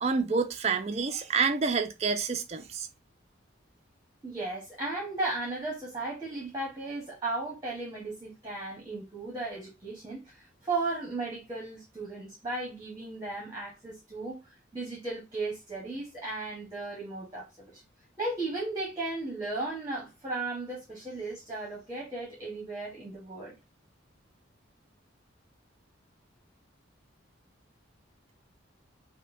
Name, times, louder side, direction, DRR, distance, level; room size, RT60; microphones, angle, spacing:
voice 1, 0.0-2.9, right 5 dB, 35° right, 0.4 m, -28 dB
voice 2, 4.2-17.8 18.2-23.6, right 2 dB, 20° right, 1.0 m, -36 dB
5.2 x 2.1 x 2.5 m
head